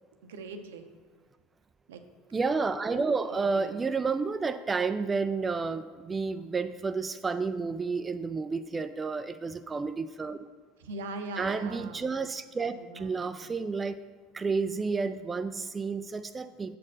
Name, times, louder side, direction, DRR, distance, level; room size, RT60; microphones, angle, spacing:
voice 1, 0.2-0.8 1.9-2.0 3.3-3.8 10.8-12.0 12.6-13.6, right 3 dB, 80° right, 7 dB, 0.7 m, -41 dB
voice 2, 2.3-10.4 11.4-14.0 14.3-16.8, right 4 dB, 20° right, 10 dB, 0.3 m, -31 dB
7.5 x 4.3 x 6.3 m, 1.4 s
hypercardioid pair, 80°, 0 cm